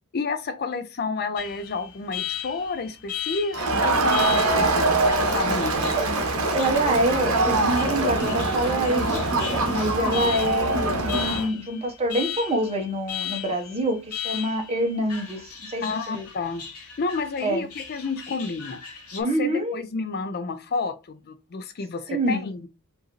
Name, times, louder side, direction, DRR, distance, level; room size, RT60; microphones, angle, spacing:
voice 1, 0.1-4.8 5.3-5.9 15.8-16.6 17.0-18.8 19.1-22.7, left 4 dB, 45° left, 0.5 m, -30 dB
Alarm, 1.4-19.2, left 10 dB, 80° left, 1.1 m, -37 dB
Crowd, 3.5-11.5, right 2 dB, 70° right, 0.9 m, -23 dB
voice 2, 6.5-16.3 17.4-17.6 19.2-19.8 22.1-22.5, right 1 dB, 30° right, 1.0 m, -26 dB
4.8 x 2.6 x 3.0 m
head